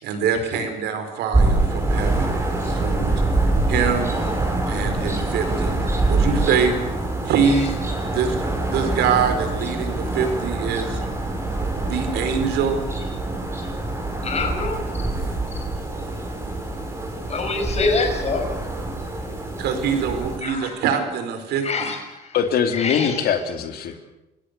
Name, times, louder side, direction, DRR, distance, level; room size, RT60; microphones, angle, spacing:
voice 1, 0.0-3.1 3.7-4.1 4.7-6.7 7.3-7.7 8.1-8.3 8.7-11.0 11.8-12.9 19.6-21.9, right 6 dB, 80° right, 7 dB, 4.7 m, -24 dB
sound 1, 1.3-20.4, right 2 dB, 15° right, 5.9 m, -25 dB
voice 2, 14.2-14.8 17.3-18.5 20.4-20.7 21.6-22.0 22.8-23.1, left 4 dB, 40° left, 4 dB, 6.0 m, -24 dB
voice 3, 22.3-24.0, left 7 dB, 65° left, 7 dB, 2.9 m, -22 dB
29.0 x 17.0 x 6.8 m, 0.94 s
cardioid pair, 110°, 17 cm